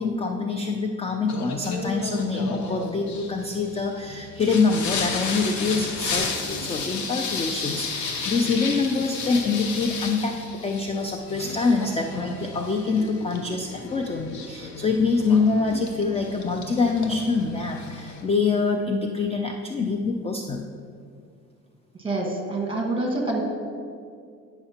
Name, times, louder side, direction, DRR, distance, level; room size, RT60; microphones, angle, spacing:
voice 1, 0.0-10.4 10.6-20.6, left 4 dB, 20° left, 3 dB, 0.3 m, -25 dB
Singing, 1.3-18.2, left 4 dB, 75° left, 0.9 m, -33 dB
voice 2, 22.0-23.4, right 2 dB, 20° right, 0 dB, 1.4 m, -26 dB
9.7 x 5.8 x 2.9 m, 2.3 s
cardioid pair, 115°, 30 cm